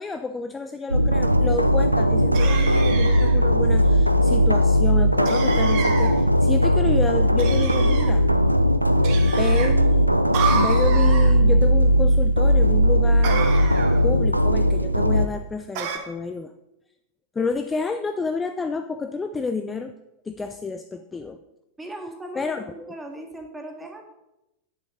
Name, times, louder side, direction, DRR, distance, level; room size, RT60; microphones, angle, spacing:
voice 1, 0.0-8.3 9.1-10.1 10.5-13.5 14.0-16.5 17.3-19.9 20.3-21.4 22.4-22.9, left 4 dB, 15° left, 8 dB, 0.5 m, -30 dB
sound 1, 0.9-15.3, equal, 90° right, 0.5 m, -18 dB
sound 2, 2.3-3.4 5.3-6.2 7.4-8.1 9.0-9.7 10.3-11.3 13.2-14.0 15.8-16.0, right 6 dB, 45° right, 1.6 m, -29 dB
voice 2, 21.8-24.1, right 1 dB, 10° right, 3 dB, 2.0 m, -38 dB
10.5 x 9.8 x 3.9 m, 0.92 s
figure-of-eight pair, 90°, 0 cm